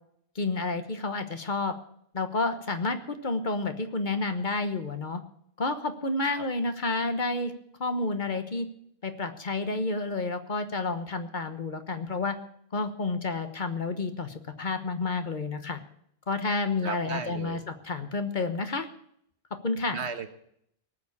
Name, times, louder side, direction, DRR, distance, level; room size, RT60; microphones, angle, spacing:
voice 1, 0.3-1.7 2.1-5.2 5.6-7.5 7.8-8.7 9.0-12.4 12.7-15.8 16.3-18.9 19.6-20.0, left 3 dB, 45° left, 8 dB, 1.3 m, -30 dB
voice 2, 16.8-17.6 19.9-20.3, right 5 dB, 90° right, 8 dB, 1.6 m, -35 dB
19.0 x 6.9 x 8.5 m, 0.71 s
omnidirectional pair, 1.1 m